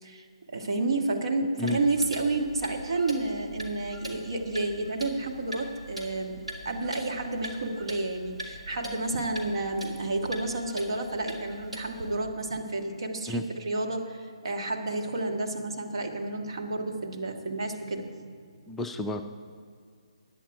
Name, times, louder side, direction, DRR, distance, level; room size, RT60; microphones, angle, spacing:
voice 1, 0.5-18.3, right 2 dB, 50° right, 2 dB, 1.6 m, -30 dB
Clock, 1.6-12.2, right 1 dB, 75° right, 2.7 m, -41 dB
voice 2, 18.7-19.2, left 2 dB, 5° left, 5 dB, 0.4 m, -30 dB
16.0 x 10.0 x 4.8 m, 2.1 s
figure-of-eight pair, 140°, 3 cm